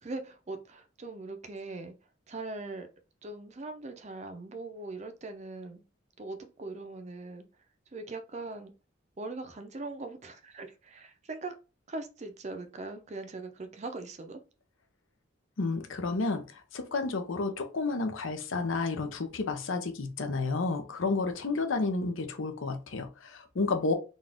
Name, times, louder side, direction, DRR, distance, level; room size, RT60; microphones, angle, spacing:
voice 1, 0.0-1.9 2.3-2.9 3.2-5.8 6.2-7.4 7.9-8.7 9.2-11.5 11.9-14.4, right 3 dB, 35° right, 7 dB, 0.5 m, -40 dB
voice 2, 15.6-23.9, left 3 dB, 75° left, 6 dB, 0.7 m, -31 dB
4.0 x 2.4 x 3.5 m, 0.32 s
head